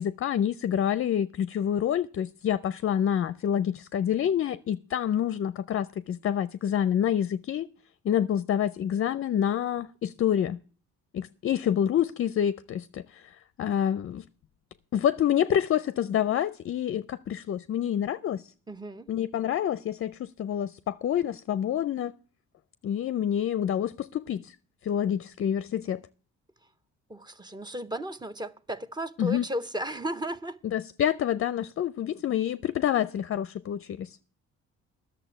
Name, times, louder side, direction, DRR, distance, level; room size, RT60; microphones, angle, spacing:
voice 1, 0.0-7.7 8.0-10.6 11.1-14.2 14.9-18.4 19.1-22.1 22.8-24.5 24.8-26.0 29.2-29.4 30.7-34.1, left 9 dB, 45° left, 0.5 m, -27 dB
voice 2, 18.7-19.1 26.6-26.7 27.1-30.6, equal, 15° right, 0.7 m, -35 dB
11.5 x 6.8 x 8.9 m
cardioid pair, 90°, 30 cm